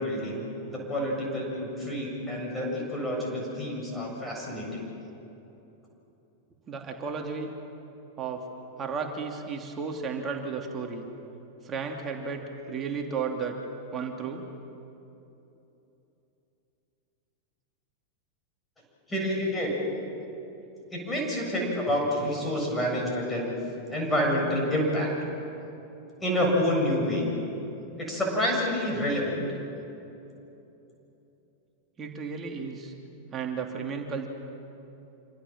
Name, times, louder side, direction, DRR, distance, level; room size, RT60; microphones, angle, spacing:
voice 1, 0.0-4.8 19.1-19.8 20.9-23.5 23.9-25.1 26.2-27.2 28.0-29.4, equal, 10° left, -1 dB, 7.6 m, -28 dB
voice 2, 6.7-7.5 8.2-8.4 8.8-11.1 11.6-13.5 13.9-14.5 32.0-32.9 33.3-34.3, right 5 dB, 25° right, 2 dB, 2.9 m, -33 dB
27.0 x 26.0 x 7.5 m, 2.9 s
figure-of-eight pair, 90°, 0 cm